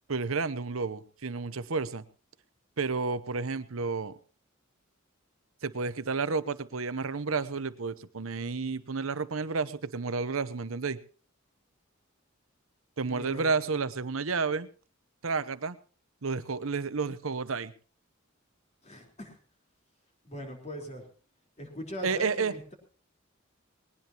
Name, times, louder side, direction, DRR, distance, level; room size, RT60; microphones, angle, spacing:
voice 1, 0.1-2.0 2.8-4.2 5.6-11.0 13.0-14.7 15.2-15.8 16.2-17.7 22.0-22.5, right 4 dB, 80° right, 14 dB, 0.9 m, -31 dB
voice 2, 13.0-13.8 18.8-19.4 20.2-21.1 21.6-22.7, equal, 35° left, 2 dB, 4.1 m, -41 dB
20.0 x 19.0 x 3.0 m, 0.39 s
head